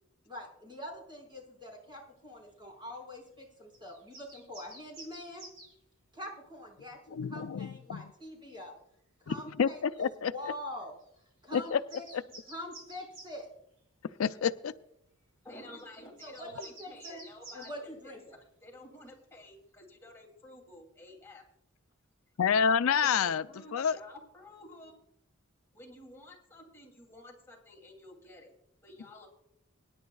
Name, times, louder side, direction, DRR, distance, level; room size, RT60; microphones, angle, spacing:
voice 1, 0.3-5.4 6.1-8.7 9.2-10.9 11.4-12.0 12.5-13.5 16.2-17.2 17.5-18.4, left 1 dB, 25° right, -1 dB, 5.3 m, -44 dB
sound 1, 3.7-5.7 8.5-8.6 9.3-9.4 9.9-10.1 11.0-11.2 11.5-13.3 14.4-14.5 15.8-17.8, right 2 dB, 70° right, 6.2 m, -51 dB
voice 2, 7.1-8.0 9.3-10.3 11.5-11.8 12.1-12.2 14.2-14.7 22.4-23.4 23.7-24.0, left 7 dB, 75° left, 12 dB, 0.4 m, -28 dB
voice 3, 15.4-18.1 18.6-21.4 23.0-25.0 25.7-28.5 28.8-29.3, left 1 dB, 10° left, -2 dB, 2.8 m, -51 dB
24.5 x 10.5 x 2.3 m, 0.79 s
head